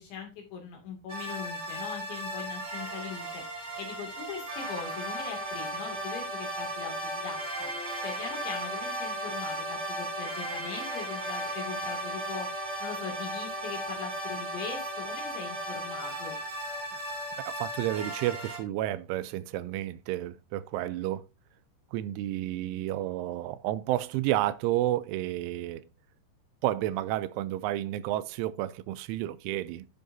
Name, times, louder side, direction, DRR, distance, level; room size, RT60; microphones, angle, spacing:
voice 1, 0.0-3.4 3.8-7.7 8.0-12.5 12.8-16.4, left 6 dB, 70° left, 4.5 m, -41 dB
sound 1, 1.1-18.6, right 1 dB, 30° right, 1.2 m, -36 dB
voice 2, 17.5-21.2 21.9-25.8 26.6-29.9, right 14 dB, 85° right, 3.0 m, -31 dB
14.0 x 5.5 x 2.6 m
omnidirectional pair, 5.5 m